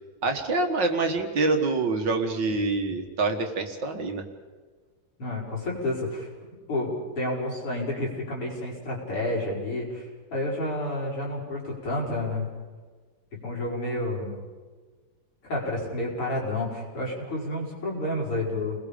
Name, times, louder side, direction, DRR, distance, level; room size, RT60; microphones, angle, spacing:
voice 1, 0.2-4.2, right 3 dB, 55° right, 4 dB, 2.3 m, -26 dB
voice 2, 5.2-12.5 13.4-14.3 15.4-18.8, left 1 dB, 80° left, -4 dB, 6.7 m, -30 dB
30.0 x 21.0 x 5.2 m, 1.4 s
omnidirectional pair, 2.4 m